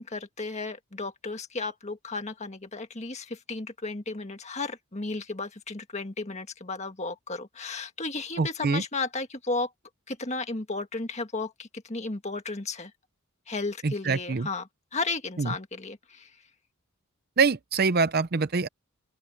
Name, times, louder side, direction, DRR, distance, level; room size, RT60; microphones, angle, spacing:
voice 1, 0.0-9.7 10.1-12.9 13.5-16.3, left 3 dB, 30° left, 1.7 m, -34 dB
voice 2, 8.4-8.8 13.8-14.5 15.4-15.5 17.4-18.7, right 4 dB, 45° right, 0.6 m, -25 dB
open air
head